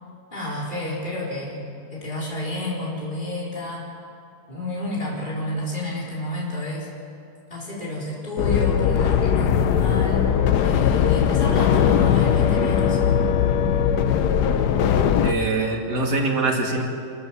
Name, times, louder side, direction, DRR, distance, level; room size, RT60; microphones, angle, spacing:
voice 1, 0.3-1.6 1.9-3.8 4.5-6.9 7.5-10.3 10.6-13.2, left 1 dB, 30° left, -6 dB, 4.8 m, -30 dB
sound 1, 8.4-15.3, left 8 dB, 80° left, 1.4 m, -19 dB
voice 2, 15.2-16.8, right 3 dB, 90° right, 0 dB, 3.2 m, -23 dB
27.5 x 14.0 x 7.5 m, 2.6 s
omnidirectional pair, 1.7 m